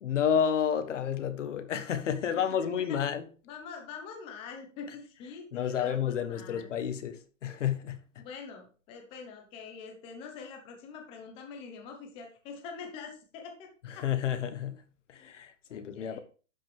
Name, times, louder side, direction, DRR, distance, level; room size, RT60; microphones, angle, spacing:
voice 1, 0.0-3.2 5.5-8.2 14.0-14.8 15.1-16.2, left 8 dB, 70° left, 1.4 m, -30 dB
voice 2, 2.3-3.0 3.4-6.7 8.2-13.7 13.9-14.0 15.1-15.3 15.7-16.2, left 5 dB, 15° left, 1.0 m, -45 dB
12.0 x 5.6 x 3.5 m
hypercardioid pair, 175°, 38 cm